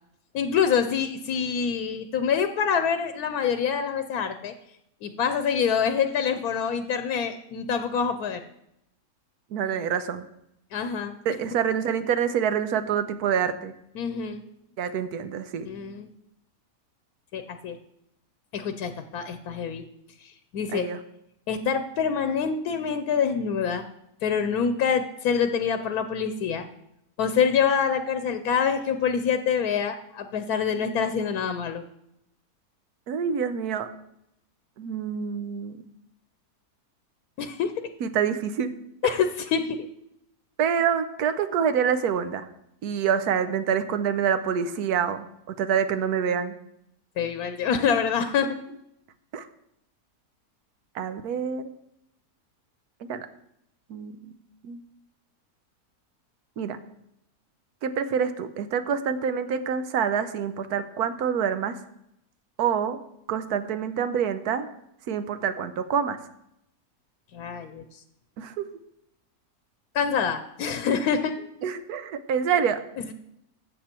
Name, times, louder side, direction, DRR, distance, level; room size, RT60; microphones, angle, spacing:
voice 1, 0.3-4.5 5.0-8.4 10.7-11.1 14.0-14.4 15.6-16.1 17.3-17.8 18.5-19.9 20.2-20.9 21.5-23.8 24.2-26.7 27.2-31.8 37.4-37.7 39.0-39.9 47.2-48.6 67.3-67.8 69.9-71.5 73.0-73.1, left 7 dB, 80° left, 9 dB, 1.2 m, -26 dB
voice 2, 9.5-10.3 11.2-13.7 14.8-15.7 20.7-21.0 33.1-33.9 34.8-35.8 38.0-38.7 39.0-39.1 40.6-42.5 42.8-46.5 49.3-49.5 50.9-51.7 53.1-53.3 53.9-54.3 54.6-54.8 56.6-56.8 57.8-61.8 62.6-63.0 63.3-64.7 65.1-66.2 68.4-68.7 71.6-72.8, right 7 dB, 85° right, 10 dB, 1.3 m, -26 dB
13.5 x 7.5 x 4.4 m, 0.80 s
omnidirectional pair, 1.6 m